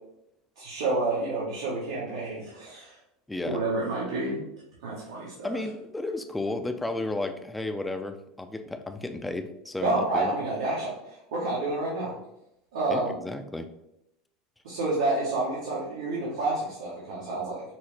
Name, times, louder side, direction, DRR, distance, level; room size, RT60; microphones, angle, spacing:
voice 1, 0.6-3.0 3.4-4.4 4.8-5.6 9.8-12.1 12.7-13.2 14.6-17.6, right 2 dB, 75° right, -7 dB, 1.2 m, -29 dB
voice 2, 3.3-3.6 5.4-10.3 12.9-13.7, left 2 dB, 10° left, 6 dB, 0.5 m, -33 dB
5.8 x 2.0 x 3.2 m, 0.84 s
hypercardioid pair, 80°, 0 cm